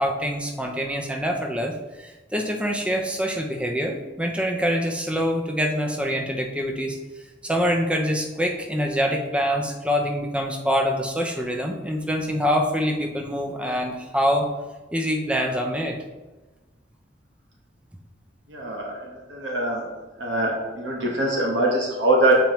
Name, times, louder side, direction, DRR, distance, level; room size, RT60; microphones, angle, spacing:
voice 1, 0.0-7.0 7.4-14.5 14.9-16.0, equal, 5° right, 2 dB, 0.6 m, -25 dB
voice 2, 18.5-19.8 20.2-22.4, right 2 dB, 80° right, -1 dB, 1.1 m, -23 dB
7.1 x 4.5 x 3.0 m, 1.2 s
head